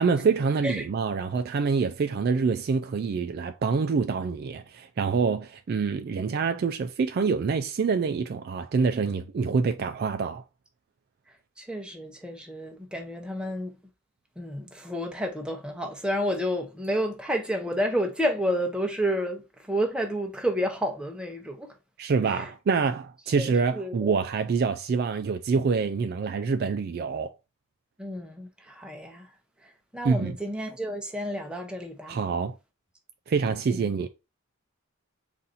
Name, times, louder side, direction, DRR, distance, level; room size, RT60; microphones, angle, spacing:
voice 1, 0.0-10.4 22.0-27.3 30.0-30.3 32.1-32.6 33.3-34.1, right 5 dB, 50° right, 0.3 m, -26 dB
voice 2, 11.6-13.7 14.4-21.7 22.2-22.5 23.3-23.5 23.7-24.1 28.0-29.3 29.6-32.2 33.7-33.9, equal, 5° right, 0.7 m, -30 dB
4.0 x 2.6 x 4.0 m
head